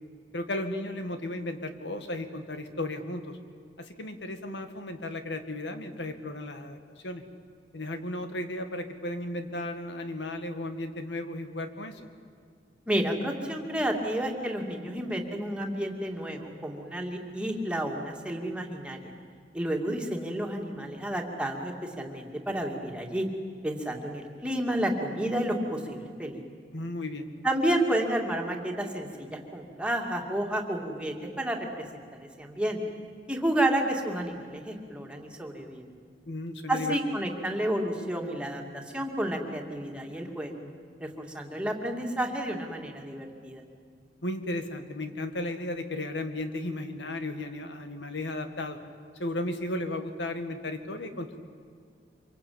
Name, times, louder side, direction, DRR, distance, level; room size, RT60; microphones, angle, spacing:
voice 1, 0.3-3.4 3.8-6.8 7.0-7.2 7.7-12.0 26.7-27.3 36.3-36.9 44.2-48.8 49.2-51.4, left 1 dB, 80° left, 8 dB, 2.0 m, -34 dB
voice 2, 12.9-19.1 19.5-23.2 23.6-26.4 27.4-31.6 31.9-32.0 32.4-32.8 33.3-35.8 36.7-40.6 41.0-43.6, right 1 dB, 5° right, 1 dB, 2.6 m, -31 dB
25.5 x 23.5 x 8.8 m, 2.1 s
head